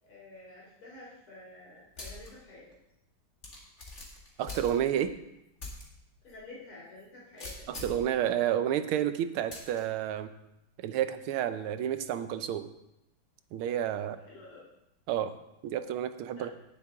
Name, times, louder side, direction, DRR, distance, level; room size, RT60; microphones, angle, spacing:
voice 1, 0.0-2.7 6.2-7.7 14.3-14.6 16.3-16.6, left 2 dB, 80° left, -5 dB, 4.1 m, -49 dB
sound 1, 2.0-2.3 2.7-2.8 3.4-5.1 5.6-5.8 6.3-6.4 7.4-8.1 9.5-9.8, left 2 dB, 35° left, 2.2 m, -42 dB
voice 2, 4.4-5.1 7.7-10.3 10.8-12.7 13.5-14.2 15.1-15.3 15.6-16.6, right 10 dB, 90° right, 10 dB, 1.6 m, -30 dB
18.5 x 6.9 x 3.6 m, 0.87 s
omnidirectional pair, 2.3 m